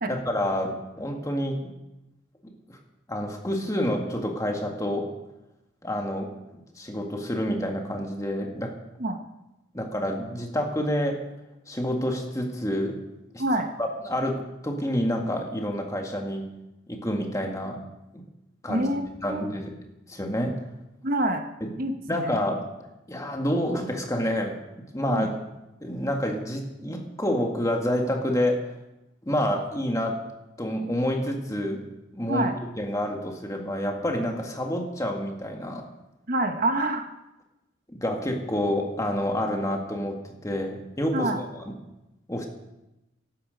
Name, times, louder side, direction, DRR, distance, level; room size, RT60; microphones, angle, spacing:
voice 1, 0.1-1.6 2.7-2.8 3.1-5.1 5.8-6.3 6.8-8.7 9.7-11.2 11.7-13.0 13.3-13.4 13.8-16.5 16.9-17.8 18.1-18.2 18.6-18.9 19.2-19.7 20.1-20.6 21.6-21.7 22.1-22.6 23.1-24.6 24.9-25.4 25.8-28.7 29.2-30.2 30.6-31.8 32.1-32.5 32.8-35.9 37.9-40.2 40.4-41.7 42.3-42.5, equal, 15° left, 2 dB, 1.8 m, -28 dB
voice 2, 18.7-19.0 19.3-19.6 21.0-21.4 21.8-22.4 25.1-25.3 32.3-32.5 36.3-37.1 41.1-41.4, right 1 dB, 45° right, 6 dB, 1.1 m, -26 dB
16.0 x 12.5 x 5.2 m, 0.94 s
head